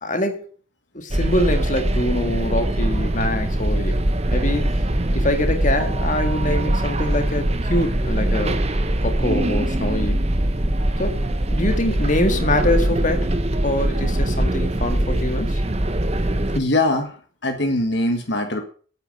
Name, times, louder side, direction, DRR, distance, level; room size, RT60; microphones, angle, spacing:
voice 1, 0.0-0.4 0.9-4.0 4.3-4.8 5.1-8.6 9.0-10.3 11.0-11.2 11.5-13.3 13.6-15.6, left 1 dB, 35° left, 6 dB, 2.0 m, -24 dB
sound 1, 1.1-16.6, right 1 dB, 30° right, 1.1 m, -22 dB
voice 2, 16.5-17.2 17.4-18.6, left 2 dB, 55° left, 5 dB, 1.6 m, -21 dB
9.1 x 9.0 x 9.2 m, 0.43 s
head